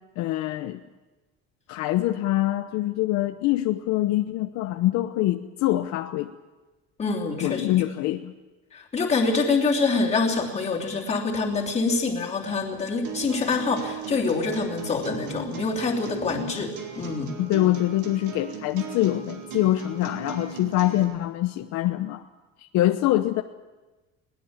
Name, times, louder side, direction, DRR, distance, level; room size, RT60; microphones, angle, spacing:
voice 1, 0.2-0.8 1.7-6.3 7.4-8.3 17.4-22.2 22.6-23.4, left 15 dB, 65° left, 7 dB, 0.9 m, -24 dB
voice 2, 7.0-7.7 8.7-17.3, left 4 dB, 20° left, -1 dB, 3.0 m, -25 dB
sound 1, 13.0-21.0, right 5 dB, 75° right, 4.0 m, -37 dB
21.5 x 19.0 x 7.3 m, 1.2 s
cardioid pair, 165°, 31 cm